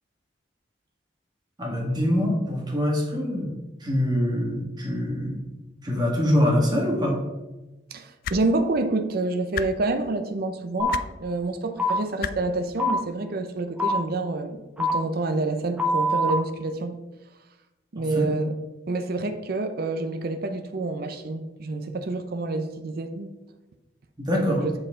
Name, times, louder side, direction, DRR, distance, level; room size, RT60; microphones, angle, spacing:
voice 1, 1.6-3.5 3.8-5.4 5.8-7.2 18.1-18.3 24.2-24.7, equal, 25° right, -2 dB, 1.7 m, -24 dB
voice 2, 7.9-16.9 17.9-18.5 18.9-23.3 24.4-24.7, right 2 dB, 55° right, 6 dB, 0.6 m, -28 dB
sound 1, 8.2-8.4 9.5-9.7 10.9-11.1 12.2-12.3 13.6-13.7, left 8 dB, 50° left, 0.3 m, -30 dB
sound 2, 10.8-10.9 11.8-11.9 12.8-12.9 13.8-13.9 14.8-14.9 15.8-16.3, left 1 dB, 5° right, 1.0 m, -23 dB
7.7 x 4.7 x 3.7 m, 1.1 s
head